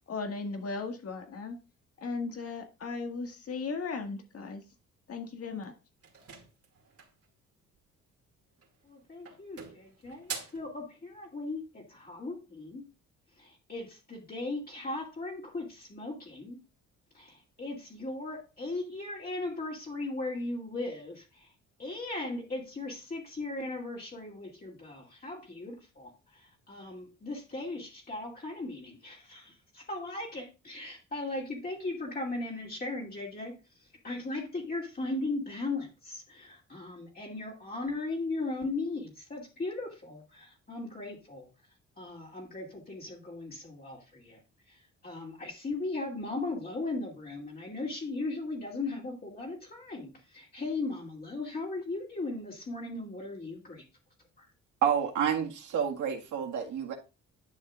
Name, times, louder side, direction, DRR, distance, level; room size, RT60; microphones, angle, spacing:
voice 1, 0.1-1.6 2.0-4.6 5.1-5.7, left 4 dB, 50° left, 1.8 m, -36 dB
sound 1, 6.0-7.3 8.5-8.9 9.2-10.7, right 6 dB, 50° right, 2.5 m, -44 dB
voice 2, 8.8-12.8 13.4-16.6 17.1-21.5 21.8-41.5 42.0-44.4 44.7-53.8 54.4-54.5, left 2 dB, 30° left, 2.5 m, -37 dB
voice 3, 54.8-56.9, right 8 dB, 75° right, 1.9 m, -29 dB
11.0 x 6.4 x 2.5 m
cardioid pair, 90°, 30 cm